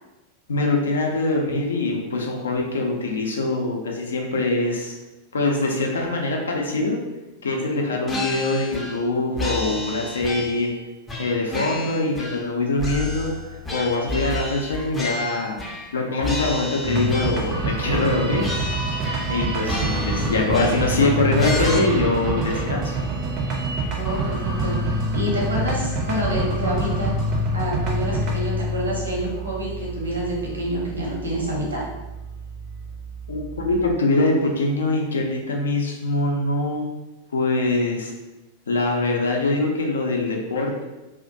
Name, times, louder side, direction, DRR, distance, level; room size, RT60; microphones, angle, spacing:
voice 1, 0.5-5.0 5.3-7.0 7.4-10.7 11.2-13.3 13.7-15.5 15.9-18.4 19.3-22.9 33.3-36.9 37.3-38.1 38.7-40.8, left 2 dB, 70° left, 1 dB, 0.4 m, -23 dB
sound 1, 8.1-9.1 9.4-10.7 11.1-12.5 12.8-16.0 16.2-17.6 17.9-18.1 18.4-19.4 19.6-21.0 21.4-21.8, left 1 dB, 15° left, 0.5 m, -30 dB
sound 2, 16.8-33.9, right 1 dB, 40° right, 0.5 m, -26 dB
voice 2, 23.9-27.1 27.5-31.8, right 1 dB, 75° right, -4 dB, 0.7 m, -28 dB
2.3 x 2.0 x 2.6 m, 1.1 s
figure-of-eight pair, 90°, 0 cm